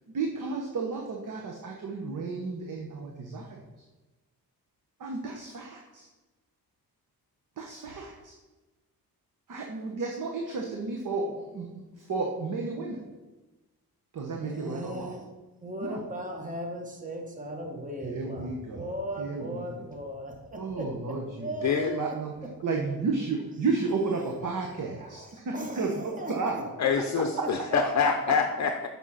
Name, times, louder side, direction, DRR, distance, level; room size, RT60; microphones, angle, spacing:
voice 1, 0.1-3.6 5.0-6.1 7.6-8.3 9.5-11.7 12.0-13.0 14.1-15.2 15.8-16.0 18.0-18.8 19.2-19.7 20.6-21.5 21.9-22.3 22.6-26.6 27.0-27.5, right 4 dB, 55° right, 1 dB, 1.1 m, -32 dB
voice 2, 14.4-15.3 15.6-22.2 22.4-22.5 25.0-27.8, right 1 dB, 20° right, 2 dB, 1.3 m, -38 dB
voice 3, 21.6-21.9 26.8-28.9, left 6 dB, 45° left, 5 dB, 0.6 m, -26 dB
7.2 x 5.5 x 5.7 m, 1.2 s
wide cardioid pair, 130°, 38 cm